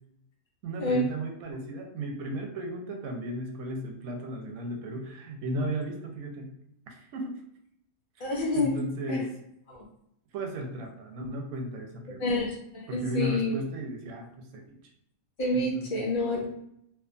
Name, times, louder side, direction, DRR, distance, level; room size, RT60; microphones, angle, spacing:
voice 1, 0.6-6.5 6.9-7.4 8.2-8.3 8.5-9.3 10.3-12.3 12.9-14.8 15.5-16.1, right 1 dB, 85° right, 3 dB, 1.0 m, -35 dB
voice 2, 8.2-8.8 9.1-9.2 9.7-9.8 11.2-11.3 12.2-13.5 15.4-16.5, left 2 dB, 60° left, -2 dB, 0.5 m, -28 dB
2.7 x 2.2 x 2.5 m, 0.75 s
omnidirectional pair, 1.5 m